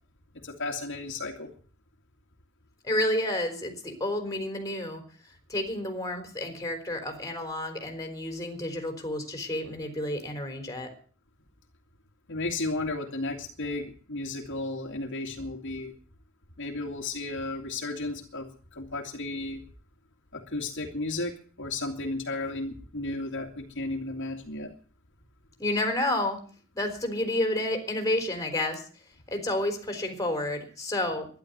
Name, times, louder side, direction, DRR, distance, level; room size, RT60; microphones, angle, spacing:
voice 1, 0.3-1.5 12.3-15.9 16.6-19.6 20.3-24.7, left 2 dB, 60° left, 1 dB, 2.4 m, -34 dB
voice 2, 2.8-5.0 5.5-10.9 25.6-26.4 26.7-28.8 29.3-31.3, left 1 dB, 15° left, 4 dB, 3.8 m, -30 dB
12.5 x 11.5 x 8.0 m, 0.43 s
head